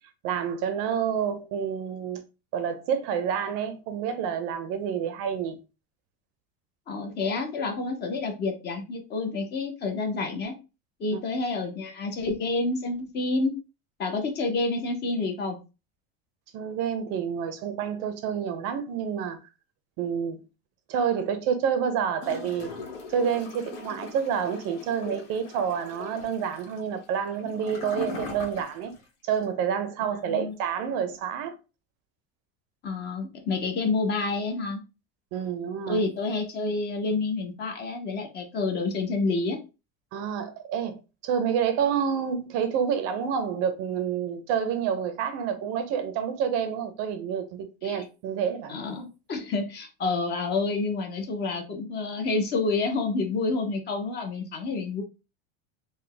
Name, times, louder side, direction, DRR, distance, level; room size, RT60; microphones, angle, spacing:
voice 1, 0.2-2.2 2.5-5.6 11.1-11.2 16.5-19.4 20.0-20.4 20.9-22.7 23.1-28.9 29.2-31.6 35.3-36.0 40.1-48.8, right 7 dB, 50° right, 0.6 m, -28 dB
voice 2, 6.9-10.5 11.0-13.5 14.0-15.6 30.1-30.5 32.8-34.8 35.9-39.6 47.8-48.0 48.7-55.0, left 3 dB, 30° left, 0.7 m, -28 dB
Gurgling / Toilet flush, 22.2-29.0 29.3-29.4, left 4 dB, 80° left, 1.5 m, -40 dB
3.9 x 2.2 x 3.3 m
supercardioid pair, 155°, 34 cm